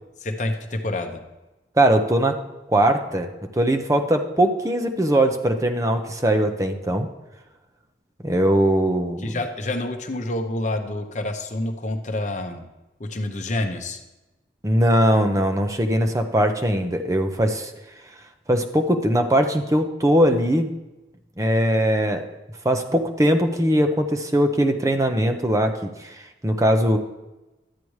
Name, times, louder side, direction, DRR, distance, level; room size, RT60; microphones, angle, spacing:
voice 1, 0.2-1.2 9.2-12.7 13.0-14.0, left 1 dB, 45° left, 5 dB, 0.8 m, -28 dB
voice 2, 1.8-2.4 2.7-3.3 3.6-7.1 8.2-9.3 14.6-17.7 18.5-20.7 21.4-22.3 22.6-27.0, right 1 dB, 20° right, 5 dB, 0.7 m, -20 dB
12.0 x 8.5 x 3.2 m, 1.0 s
head